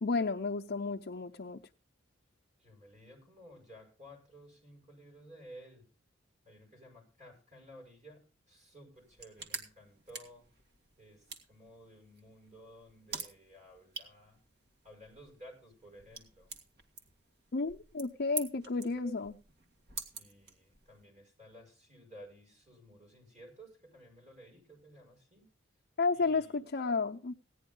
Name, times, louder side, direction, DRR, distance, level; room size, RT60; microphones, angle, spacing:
voice 1, 0.0-1.6 17.5-19.4 26.0-27.3, left 4 dB, 55° left, 0.6 m, -32 dB
voice 2, 2.6-5.9 6.4-10.5 11.0-14.4 14.8-16.5 20.2-25.5 26.1-26.6, equal, 40° right, 6.4 m, -55 dB
sound 1, 8.9-21.0, right 4 dB, 55° right, 1.9 m, -48 dB
16.5 x 10.0 x 3.7 m
head